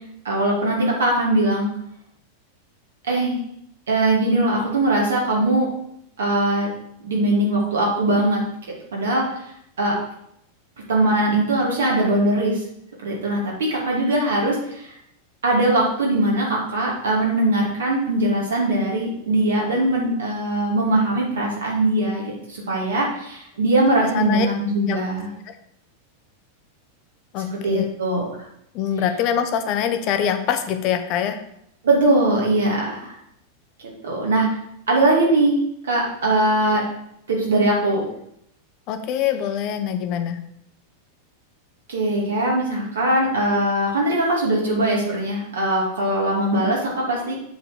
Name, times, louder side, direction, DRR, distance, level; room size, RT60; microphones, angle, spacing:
voice 1, 0.2-1.7 3.1-3.4 3.9-5.7 6.2-6.7 7.0-8.4 8.9-9.2 9.8-9.9 10.9-12.6 13.0-14.9 15.4-22.2 22.5-25.3 27.5-28.2 31.8-33.1 34.0-34.5 34.9-35.6 35.8-36.8 37.3-38.0 41.9-47.3, right 1 dB, 65° right, -3 dB, 2.7 m, -21 dB
voice 2, 24.1-24.5 24.9-25.0 25.5-25.6 27.3-27.9 28.7-31.4 38.9-40.4, left 9 dB, 40° left, 7 dB, 0.9 m, -24 dB
7.4 x 4.4 x 6.3 m, 0.74 s
figure-of-eight pair, 90°, 0 cm